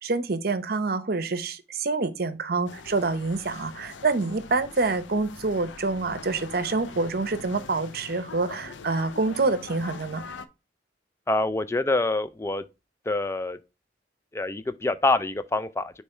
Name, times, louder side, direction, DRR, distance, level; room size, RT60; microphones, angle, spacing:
voice 1, 0.0-10.2, right 3 dB, 55° right, 0.7 m, -27 dB
sound 1, 2.7-10.5, left 4 dB, 85° left, 0.6 m, -43 dB
voice 2, 11.3-12.6 13.1-13.6 14.3-16.0, left 2 dB, 15° left, 0.4 m, -26 dB
6.8 x 3.2 x 4.3 m
head